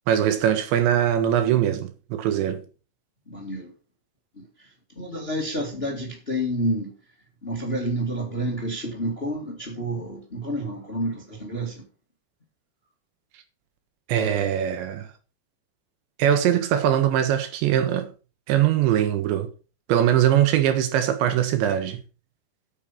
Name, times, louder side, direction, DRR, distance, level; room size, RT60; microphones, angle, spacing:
voice 1, 0.1-2.6 14.1-15.1 16.2-18.1 18.5-19.5 19.9-22.0, right 10 dB, 85° right, 3.8 m, -21 dB
voice 2, 3.3-3.7 4.4-4.5 5.0-6.9 7.4-11.8, right 1 dB, 20° left, 1.5 m, -29 dB
8.9 x 8.1 x 5.9 m
omnidirectional pair, 5.0 m